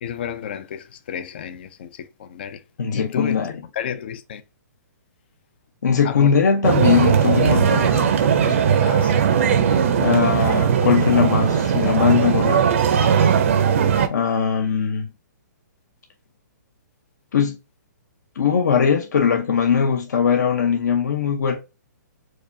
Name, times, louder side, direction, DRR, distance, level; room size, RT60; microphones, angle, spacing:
voice 1, 0.0-2.6 2.9-3.4 3.7-4.4 6.0-6.3 8.8-9.1, left 8 dB, 35° left, 0.3 m, -31 dB
voice 2, 2.8-3.5 5.8-8.1 8.4-8.6 10.0-12.7 14.1-15.1 17.3-17.5 18.4-21.6, left 6 dB, 65° left, 0.8 m, -20 dB
sound 1, 6.6-14.1, right 7 dB, 45° right, 0.6 m, -18 dB
4.8 x 2.3 x 2.6 m
hypercardioid pair, 170°, 10 cm